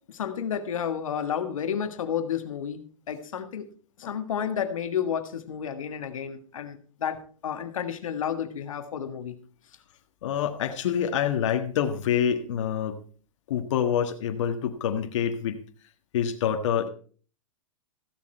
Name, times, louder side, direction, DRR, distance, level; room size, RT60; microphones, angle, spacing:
voice 1, 0.1-3.7 4.0-9.4, left 8 dB, 80° left, 7 dB, 1.6 m, -31 dB
voice 2, 10.2-13.0 13.5-15.6 16.1-16.9, left 8 dB, 60° left, 5 dB, 1.5 m, -26 dB
15.0 x 7.5 x 4.4 m, 0.43 s
hypercardioid pair, 140°, 17 cm